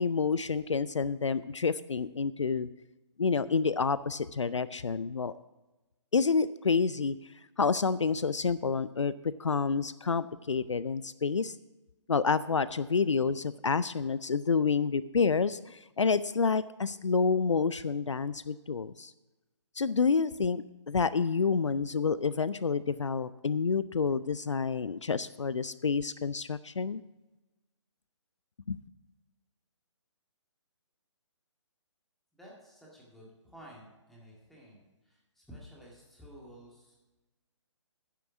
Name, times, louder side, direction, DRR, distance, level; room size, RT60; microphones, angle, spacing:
voice 1, 0.0-2.7 3.2-5.3 6.1-7.2 7.6-9.1 9.4-11.6 12.1-19.1 19.8-27.0 28.7-28.8, left 5 dB, 70° left, 17 dB, 0.4 m, -28 dB
voice 2, 32.3-37.0, equal, ahead, -4 dB, 1.9 m, -52 dB
10.5 x 7.6 x 6.0 m, 1.1 s
figure-of-eight pair, 140°, 16 cm